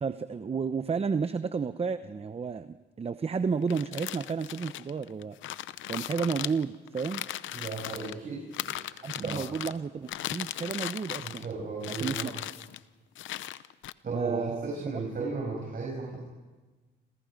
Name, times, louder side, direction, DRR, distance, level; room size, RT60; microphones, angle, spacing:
voice 1, 0.0-5.4 5.9-7.3 9.0-11.4 11.9-12.3 14.1-15.0, right 5 dB, 30° right, 11 dB, 0.8 m, -32 dB
sound 1, 3.6-8.1 8.5-9.8 10.1-11.5 11.8-12.8 13.2-13.9, left 13 dB, 80° left, 0.8 m, -37 dB
voice 2, 7.5-9.4 11.2-12.3 14.0-16.2, right 4 dB, 50° right, -1 dB, 7.0 m, -35 dB
29.0 x 27.0 x 5.3 m, 1.3 s
cardioid pair, 90°, 20 cm